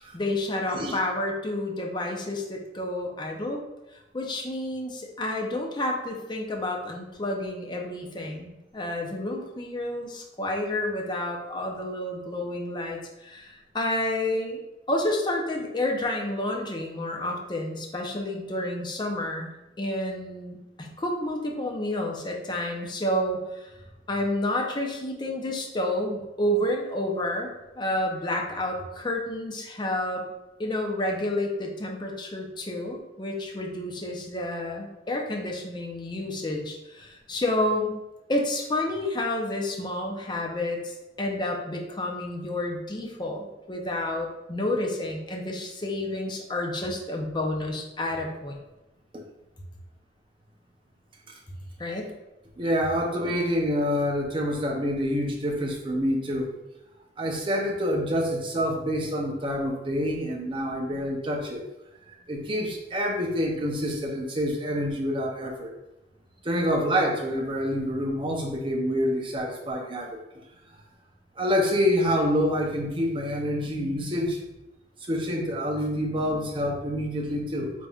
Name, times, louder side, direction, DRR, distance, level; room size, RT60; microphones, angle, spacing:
voice 1, 0.1-3.6 4.1-14.6 14.9-19.5 19.8-23.7 24.1-27.5 27.8-30.2 30.6-38.0 38.3-48.6 51.8-52.1, left 1 dB, 25° left, 1 dB, 0.6 m, -30 dB
voice 2, 52.6-56.5 57.2-61.6 62.1-65.7 66.4-70.2 71.4-74.4 75.0-77.7, equal, 30° right, 0 dB, 0.6 m, -27 dB
4.0 x 3.5 x 2.3 m, 0.97 s
head